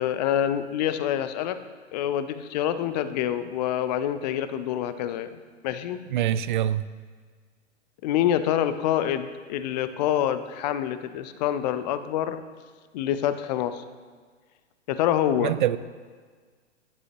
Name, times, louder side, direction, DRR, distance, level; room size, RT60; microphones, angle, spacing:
voice 1, 0.0-1.6 1.9-5.3 5.6-6.0 8.0-12.4 12.9-13.8 14.9-15.5, left 10 dB, 35° left, 12 dB, 0.6 m, -26 dB
voice 2, 6.1-6.9 15.4-15.8, right 11 dB, 45° right, 15 dB, 0.4 m, -24 dB
11.5 x 10.5 x 3.0 m, 1.5 s
figure-of-eight pair, 110°, 37 cm